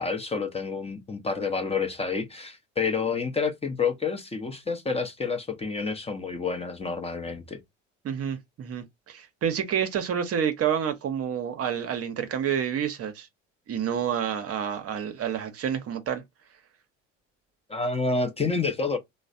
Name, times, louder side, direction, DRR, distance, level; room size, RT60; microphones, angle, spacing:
voice 1, 0.0-7.6 17.7-19.0, left 4 dB, 15° left, 0.7 m, -29 dB
voice 2, 8.0-13.3 13.7-16.2, right 8 dB, 40° right, 0.7 m, -29 dB
3.1 x 2.1 x 2.5 m
hypercardioid pair, 65°, 37 cm